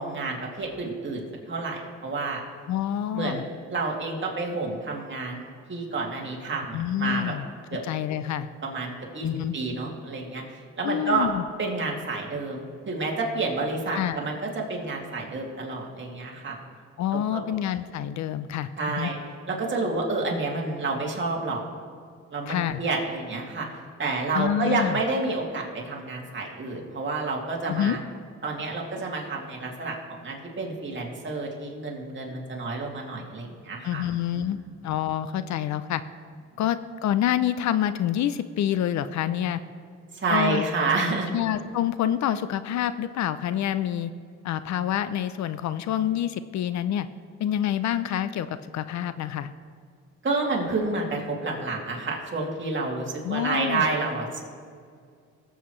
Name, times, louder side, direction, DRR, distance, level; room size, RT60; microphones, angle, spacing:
voice 1, 0.0-2.4 3.1-7.3 7.7-7.8 8.6-9.3 9.5-11.3 11.6-16.6 17.3-17.4 18.8-19.2 19.5-21.6 22.3-23.7 24.0-28.0 28.4-34.0 34.4-34.5 36.5-36.6 40.1-41.3 50.2-54.4, right 3 dB, 40° right, -1 dB, 2.5 m, -29 dB
voice 2, 2.7-3.4 6.7-7.5 7.8-8.5 9.2-9.5 10.8-11.4 13.9-14.2 17.0-19.1 22.5-22.8 24.3-25.0 27.7-28.0 33.8-34.6 34.8-36.0 36.6-39.6 40.3-40.6 41.3-44.1 44.4-47.1 47.4-49.5 53.2-53.9, left 11 dB, 65° left, 13 dB, 0.5 m, -27 dB
18.5 x 7.9 x 3.1 m, 2.2 s
cardioid pair, 90°, 30 cm